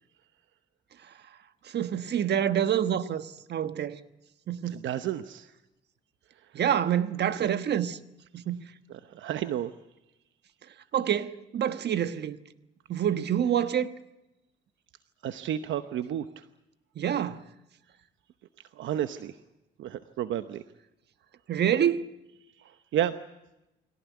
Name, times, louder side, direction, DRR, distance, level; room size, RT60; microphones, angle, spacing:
voice 1, 1.6-4.0 4.5-4.9 6.5-8.0 8.3-8.7 10.9-12.4 12.9-13.9 17.0-17.4 21.5-22.1, right 9 dB, 60° right, 1.3 m, -27 dB
voice 2, 4.7-5.5 7.3-7.5 8.9-9.7 15.2-16.5 18.8-19.3 19.8-20.6 22.9-23.2, right 11 dB, 75° right, 0.9 m, -31 dB
23.0 x 18.0 x 9.4 m
cardioid pair, 90°, 20 cm